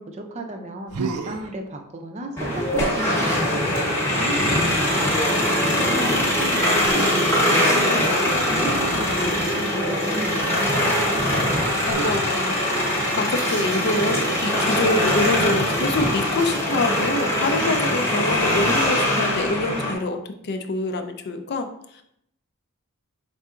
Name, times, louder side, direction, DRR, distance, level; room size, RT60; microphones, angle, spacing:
voice 1, 0.0-5.1 5.7-11.0, right 1 dB, 30° right, 3 dB, 0.5 m, -35 dB
Human voice, 0.9-1.5 2.7-3.1 4.4-5.1 6.8-7.5 8.6-9.8 11.8-12.1 14.1-14.4 16.4-16.9 18.5-19.0, right 4 dB, 85° right, 0.5 m, -33 dB
sound 1, 2.4-19.9, left 1 dB, 10° left, 1.0 m, -22 dB
voice 2, 5.9-6.2 6.7-6.9 11.9-22.0, left 2 dB, 45° left, 7 dB, 0.4 m, -26 dB
5.4 x 3.7 x 2.4 m, 0.75 s
head